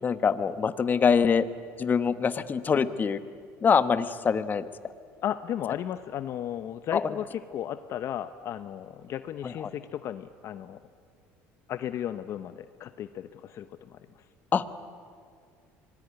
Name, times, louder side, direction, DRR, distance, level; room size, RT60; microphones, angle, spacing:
voice 1, 0.0-1.5 1.8-3.2 3.6-4.7 6.9-7.0 9.4-9.5 14.5-14.6, left 6 dB, 30° left, 12 dB, 1.3 m, -24 dB
voice 2, 5.2-10.8 11.7-14.2, left 10 dB, 55° left, 11 dB, 0.9 m, -35 dB
26.0 x 20.0 x 9.8 m, 2.2 s
supercardioid pair, 105°, 6 cm